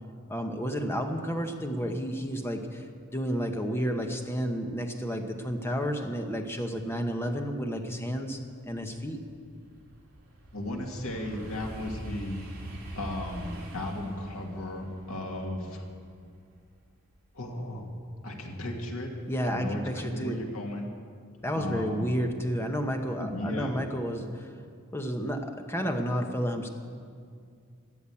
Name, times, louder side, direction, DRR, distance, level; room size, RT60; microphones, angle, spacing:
voice 1, 0.3-8.4 8.7-9.2 19.3-20.4 21.4-24.5 24.9-26.7, equal, 10° left, 4 dB, 1.1 m, -31 dB
sound 1, 8.4-17.2 17.6-18.0, right 1 dB, 45° right, 3.4 m, -43 dB
voice 2, 10.5-12.5 13.0-15.8 17.3-17.9 18.2-19.1 19.5-20.9 21.5-22.1 23.2-23.7, left 1 dB, 75° left, 1 dB, 2.2 m, -35 dB
14.0 x 10.0 x 8.5 m, 2.2 s
head